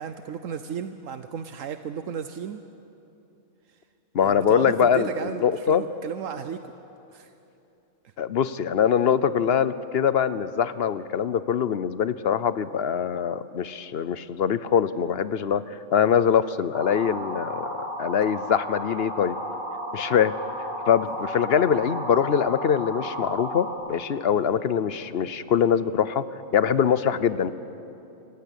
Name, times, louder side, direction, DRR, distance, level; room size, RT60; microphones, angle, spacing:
voice 1, 0.0-2.6 3.7-3.8 4.2-6.7 7.1-7.3 21.0-21.2, right 7 dB, 75° right, 9 dB, 1.1 m, -34 dB
voice 2, 4.1-5.1 5.4-5.8 8.2-19.4 19.9-20.3 20.9-26.2 26.5-27.5, left 8 dB, 55° left, 15 dB, 0.9 m, -23 dB
sound 1, 16.7-23.7, equal, 20° right, 3.9 m, -33 dB
26.0 x 17.5 x 10.0 m, 2.9 s
omnidirectional pair, 1.4 m